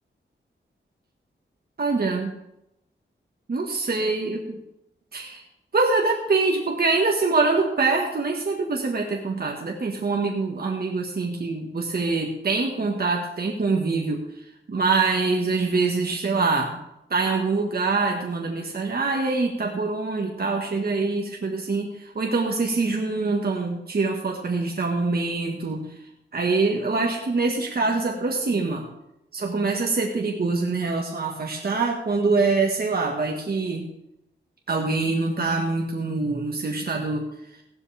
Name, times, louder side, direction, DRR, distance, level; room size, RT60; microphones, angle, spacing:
voice 1, 1.8-2.3 3.5-4.6 5.1-5.4 5.7-16.8 17.1-26.0 26.3-28.9 29.3-33.9 34.7-37.6, right 3 dB, 50° right, 0 dB, 1.6 m, -24 dB
15.5 x 12.5 x 3.5 m, 0.86 s
wide cardioid pair, 110°, 20 cm